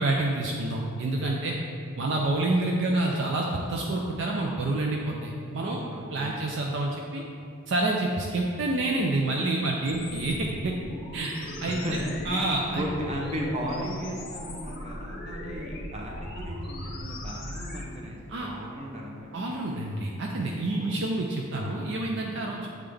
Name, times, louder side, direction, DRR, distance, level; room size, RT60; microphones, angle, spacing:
voice 1, 0.0-1.6 2.0-5.8 6.1-7.2 7.7-10.7 11.1-11.8 12.3-12.9 18.3-18.5 19.3-22.7, right 2 dB, 55° right, 0 dB, 0.4 m, -28 dB
voice 2, 5.6-6.5 11.7-11.9 12.7-19.4 20.7-21.3 22.4-22.6, equal, 30° right, -2 dB, 0.7 m, -36 dB
sound 1, 9.8-17.8, left 1 dB, 40° left, 0.7 m, -38 dB
7.8 x 3.6 x 3.4 m, 2.4 s
head